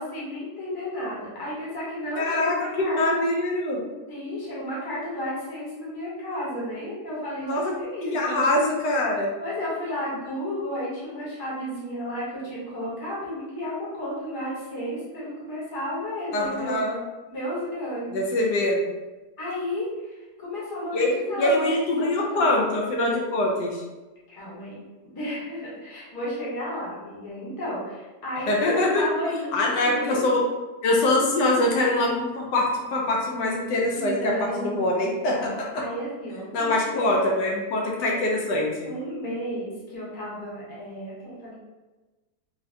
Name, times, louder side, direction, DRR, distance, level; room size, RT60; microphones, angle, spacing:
voice 1, 0.0-3.0 4.1-8.4 9.4-16.8 17.3-18.2 19.4-22.5 24.3-24.7 25.1-30.2 30.9-31.0 33.9-34.8 35.3-37.4 38.8-41.5, equal, 20° left, -7 dB, 0.7 m, -33 dB
voice 2, 2.2-3.8 7.4-7.7 8.1-9.3 16.3-17.0 18.1-18.8 20.9-23.8 28.5-29.0 29.5-30.4 30.8-35.7 36.5-38.7, left 2 dB, 80° left, -1 dB, 1.2 m, -24 dB
3.8 x 2.1 x 2.6 m, 1.2 s
omnidirectional pair, 1.8 m